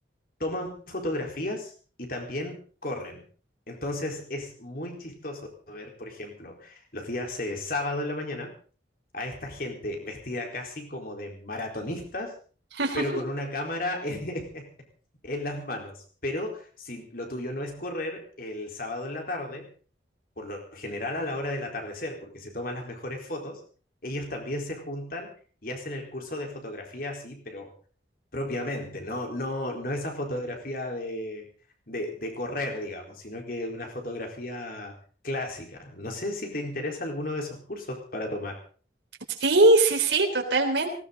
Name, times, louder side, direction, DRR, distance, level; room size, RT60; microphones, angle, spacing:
voice 1, 0.4-1.7 2.0-3.2 3.7-8.5 9.1-12.3 12.9-14.7 15.2-19.7 20.4-23.6 24.0-25.3 25.6-27.7 28.3-31.5 31.9-34.9 35.2-38.6, left 1 dB, 50° left, 2 dB, 4.3 m, -34 dB
voice 2, 39.4-40.9, right 2 dB, 75° right, 2 dB, 3.5 m, -21 dB
19.0 x 18.0 x 4.0 m, 0.40 s
head